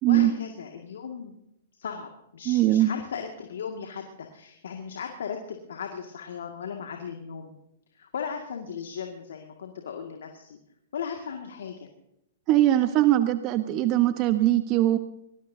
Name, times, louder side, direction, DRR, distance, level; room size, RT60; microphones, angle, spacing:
voice 1, 0.1-1.3 1.8-7.5 8.0-10.6 10.9-11.9, left 6 dB, 75° left, 3 dB, 2.0 m, -37 dB
voice 2, 2.5-2.9 12.5-15.0, right 14 dB, 35° right, 10 dB, 1.1 m, -21 dB
24.5 x 20.0 x 2.8 m, 0.81 s
hypercardioid pair, 120°, 0 cm